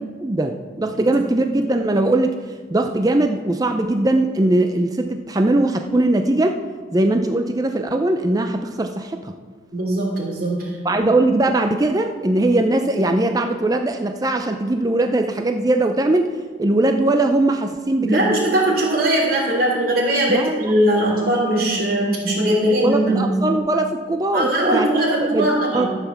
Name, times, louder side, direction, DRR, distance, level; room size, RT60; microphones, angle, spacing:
voice 1, 0.2-2.3 2.7-6.6 6.9-9.3 10.8-16.3 16.6-18.3 20.3-20.6 22.8-24.9 25.3-25.9, right 2 dB, 20° right, 5 dB, 0.5 m, -20 dB
voice 2, 9.7-10.7 18.0-23.4 24.3-25.9, right 1 dB, 50° right, -3 dB, 3.1 m, -20 dB
13.5 x 5.8 x 7.0 m, 1.5 s
head